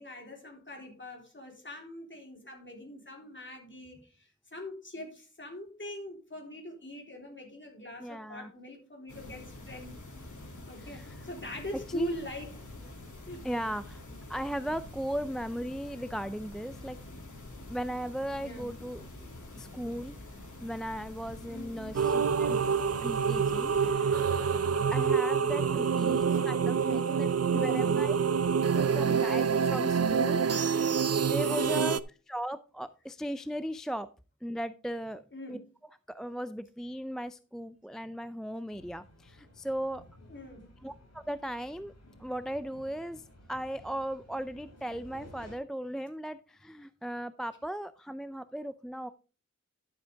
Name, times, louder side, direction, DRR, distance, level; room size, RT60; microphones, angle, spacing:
voice 1, 0.0-9.9 10.7-12.6 13.3-13.5 18.4-18.7 21.5-22.0 26.1-26.4 26.9-28.0 30.4-31.8 35.3-35.6 40.3-40.7, equal, 40° left, 3.6 m, -43 dB
voice 2, 8.0-8.5 10.8-11.2 11.9-12.2 13.4-14.0 14.3-17.0 17.7-19.3 19.6-20.2 20.6-22.6 23.0-24.5 24.9-28.1 28.7-30.9 31.3-32.0 32.3-34.1 34.4-35.2 35.5-35.6 36.1-40.0 40.8-41.9 42.2-49.1, equal, ahead, 0.4 m, -37 dB
sound 1, 9.1-23.9, left 2 dB, 80° left, 2.5 m, -46 dB
sound 2, 21.9-32.0, right 6 dB, 55° right, 0.5 m, -27 dB
sound 3, 38.7-45.6, left 1 dB, 60° left, 3.5 m, -54 dB
11.5 x 7.3 x 3.4 m
wide cardioid pair, 75°, 30 cm